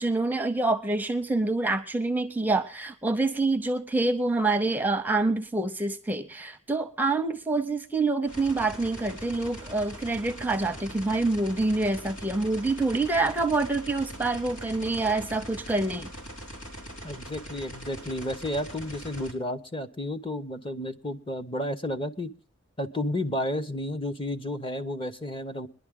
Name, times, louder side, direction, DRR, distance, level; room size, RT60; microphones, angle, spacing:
voice 1, 0.0-16.1, right 2 dB, 10° right, 7 dB, 0.7 m, -26 dB
sound 1, 8.3-19.3, equal, 70° left, 3.4 m, -42 dB
voice 2, 17.0-22.3 22.8-25.7, left 1 dB, 25° left, 9 dB, 0.9 m, -32 dB
21.0 x 11.5 x 3.7 m, 0.36 s
head